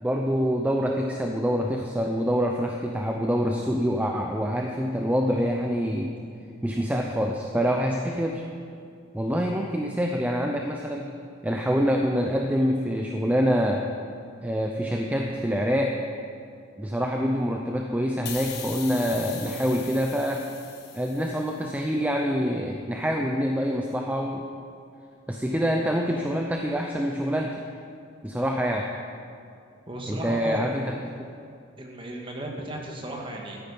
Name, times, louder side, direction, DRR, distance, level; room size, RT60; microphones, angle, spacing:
voice 1, 0.0-6.1 6.6-8.4 9.1-11.1 11.4-13.8 14.4-16.0 16.8-20.5 20.9-24.5 25.3-27.6 28.2-28.9 30.1-31.0, equal, 10° right, 2 dB, 0.5 m, -26 dB
sound 1, 18.2-21.6, left 7 dB, 55° left, 1.6 m, -40 dB
voice 2, 29.9-30.7 31.8-33.6, right 1 dB, 25° right, 0 dB, 1.6 m, -35 dB
13.5 x 9.1 x 5.4 m, 2.4 s
head